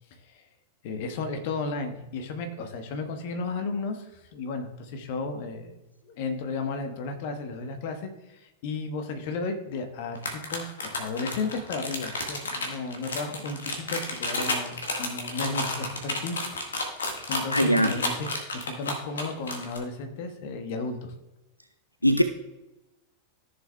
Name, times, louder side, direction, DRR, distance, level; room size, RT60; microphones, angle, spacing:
voice 1, 0.8-16.4 16.9-17.0 17.3-21.1, left 3 dB, 50° left, 6 dB, 1.2 m, -34 dB
sound 1, 10.2-19.8, left 2 dB, 70° left, 1.6 m, -31 dB
voice 2, 17.5-18.0 22.0-22.2, equal, 90° left, 8 dB, 0.4 m, -21 dB
14.5 x 6.9 x 2.3 m, 1.0 s
figure-of-eight pair, 90°, 0 cm